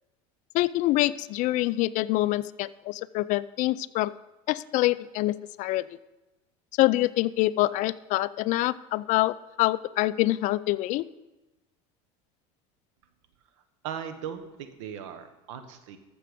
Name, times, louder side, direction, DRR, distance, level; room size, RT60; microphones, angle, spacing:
voice 1, 0.5-4.1 4.5-5.9 6.8-11.1, left 17 dB, 55° left, 18 dB, 0.4 m, -25 dB
voice 2, 13.8-16.0, right 8 dB, 85° right, 8 dB, 1.3 m, -38 dB
14.0 x 6.9 x 5.1 m, 1.1 s
supercardioid pair, 110°, 15 cm